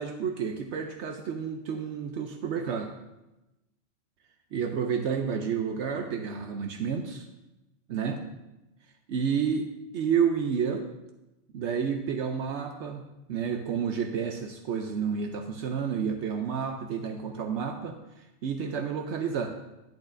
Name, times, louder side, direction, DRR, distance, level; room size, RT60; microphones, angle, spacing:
voice 1, 0.0-2.9 4.5-7.3 7.9-8.2 9.1-9.7 9.9-10.9 11.5-18.0 18.4-19.5, right 7 dB, 70° right, 5 dB, 0.8 m, -30 dB
10.5 x 8.4 x 2.5 m, 0.98 s
omnidirectional pair, 1.3 m